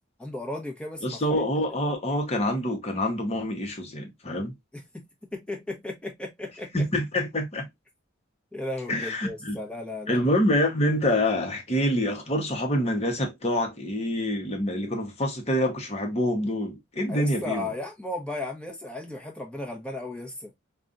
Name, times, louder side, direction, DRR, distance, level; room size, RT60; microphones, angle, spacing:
voice 1, 0.2-1.4 4.7-5.1 5.3-6.8 8.5-10.2 17.1-20.5, left 2 dB, 5° left, 1.0 m, -35 dB
voice 2, 1.0-4.5 6.7-7.7 8.9-9.6 10.1-17.7, left 1 dB, 30° left, 1.0 m, -26 dB
5.2 x 2.4 x 2.5 m
head